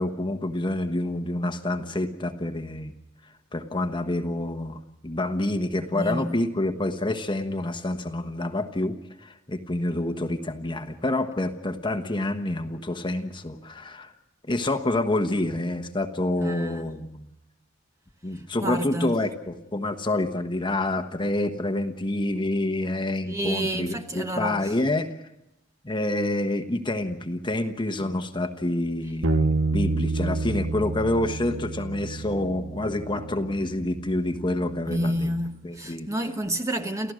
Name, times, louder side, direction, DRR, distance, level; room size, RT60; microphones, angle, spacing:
voice 1, 0.0-2.9 3.5-14.1 14.4-17.3 18.2-25.1 25.8-35.3 35.6-36.1, left 1 dB, 25° left, 1.2 m, -28 dB
voice 2, 5.9-6.3 16.4-16.9 18.3-19.2 23.2-24.7 34.9-37.1, right 1 dB, 15° right, 1.2 m, -29 dB
Bass guitar, 29.2-35.5, right 3 dB, 80° right, 1.0 m, -29 dB
29.5 x 15.0 x 6.3 m
head